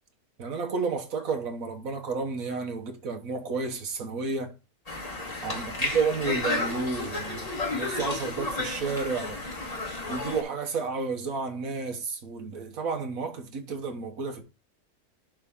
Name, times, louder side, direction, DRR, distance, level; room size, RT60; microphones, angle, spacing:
voice 1, 0.4-4.5 5.4-9.4 10.1-14.4, right 4 dB, 65° right, 1.6 m, -31 dB
Conversation, 4.9-10.4, left 2 dB, 25° left, 1.6 m, -32 dB
11.0 x 4.0 x 3.7 m
omnidirectional pair, 1.6 m